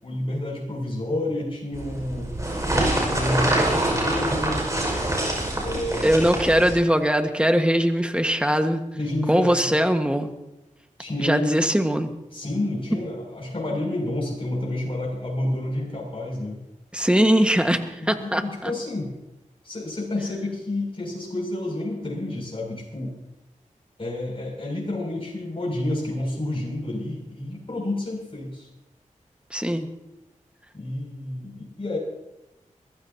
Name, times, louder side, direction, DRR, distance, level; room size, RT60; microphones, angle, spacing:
voice 1, 0.0-2.3 3.0-4.6 5.6-6.3 8.9-9.7 11.0-11.7 12.3-16.6 18.0-19.1 19.6-23.2 24.0-28.7 30.7-32.0, left 1 dB, 40° left, -3 dB, 6.9 m, -29 dB
sound 1, 1.7-6.8, right 1 dB, 25° right, 5.6 m, -25 dB
voice 2, 6.0-8.8 9.3-10.3 11.2-12.1 16.9-18.7 29.5-29.9, equal, 10° right, 6 dB, 1.6 m, -21 dB
22.5 x 15.5 x 2.9 m, 0.94 s
cardioid pair, 45°, 14 cm